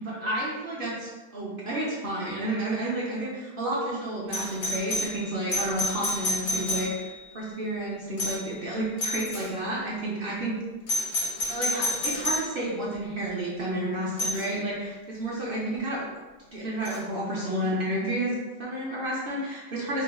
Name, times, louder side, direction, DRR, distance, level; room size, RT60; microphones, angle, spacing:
voice 1, 0.0-7.1 7.3-10.5 11.3-16.1 16.5-20.0, right 1 dB, 50° right, -5 dB, 0.7 m, -31 dB
Doorbell, 4.3-7.3 8.2-8.6 9.0-9.5 10.9-12.5 14.2-14.5 16.9-17.0, left 1 dB, 80° left, 1.6 m, -30 dB
5.8 x 2.3 x 2.4 m, 1.2 s
omnidirectional pair, 1.7 m